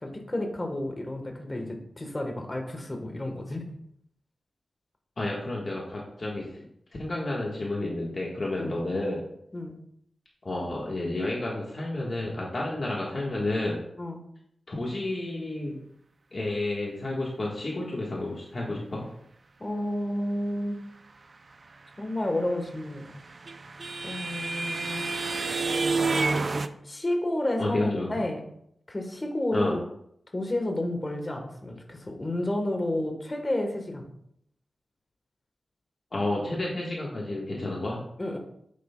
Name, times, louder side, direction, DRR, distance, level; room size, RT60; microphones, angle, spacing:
voice 1, 0.0-3.6 8.6-8.8 9.5-9.7 12.7-12.8 14.0-14.2 19.6-20.8 22.0-23.0 24.0-25.1 26.8-28.4 28.9-29.8 30.3-34.1 38.2-38.4, left 1 dB, 25° left, 3 dB, 1.3 m, -31 dB
voice 2, 5.2-6.6 7.0-9.2 10.4-13.8 14.7-15.8 16.3-19.0 27.6-28.1 29.5-29.8 36.1-38.0, left 2 dB, 45° left, -3 dB, 1.4 m, -30 dB
sound 1, 22.8-26.7, right 3 dB, 45° right, 0.4 m, -28 dB
9.3 x 7.7 x 2.3 m, 0.72 s
wide cardioid pair, 145°, 0 cm